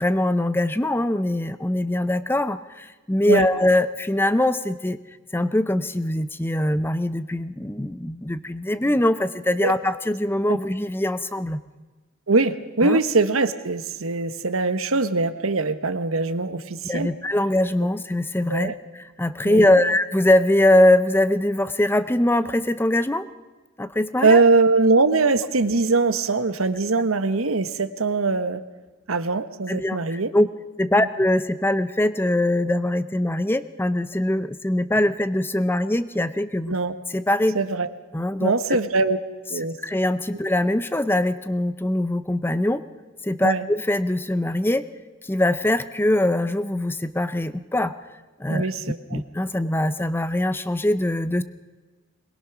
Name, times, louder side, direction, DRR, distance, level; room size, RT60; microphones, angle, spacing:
voice 1, 0.0-5.0 5.3-11.6 12.8-13.0 16.8-23.3 23.8-24.4 29.7-30.5 30.8-36.7 37.1-37.6 38.1-38.5 39.8-42.8 43.2-44.8 45.2-47.9 48.4-48.7 49.1-51.4, left 1 dB, 10° left, 13 dB, 0.6 m, -22 dB
voice 2, 12.3-17.1 18.5-18.7 19.4-19.9 24.2-28.6 29.1-30.3 30.9-31.1 36.7-36.9 37.5-37.9 38.4-39.2 39.5-39.8 43.4-43.6 48.5-49.2, right 3 dB, 90° right, 11 dB, 1.2 m, -22 dB
22.0 x 20.5 x 6.0 m, 1.3 s
head